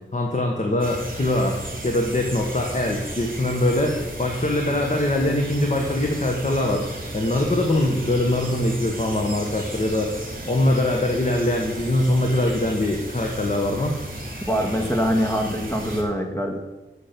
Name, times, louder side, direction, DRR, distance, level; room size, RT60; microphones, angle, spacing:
voice 1, 0.1-13.9, left 1 dB, 35° left, 1 dB, 1.5 m, -23 dB
sound 1, 0.8-16.0, right 1 dB, 45° right, 3.1 m, -34 dB
voice 2, 14.5-16.6, equal, 15° left, 3 dB, 1.9 m, -24 dB
10.5 x 7.5 x 6.9 m, 1.1 s
wide cardioid pair, 90°, 20 cm